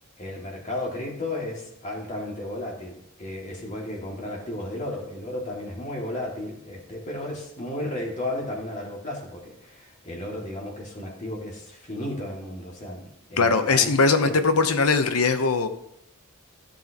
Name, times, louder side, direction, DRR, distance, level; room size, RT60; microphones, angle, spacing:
voice 1, 0.2-13.9 14.2-14.4, left 1 dB, 35° left, -2 dB, 2.3 m, -34 dB
voice 2, 13.4-15.7, left 4 dB, 85° left, 9 dB, 0.9 m, -20 dB
14.0 x 7.4 x 3.0 m, 0.77 s
head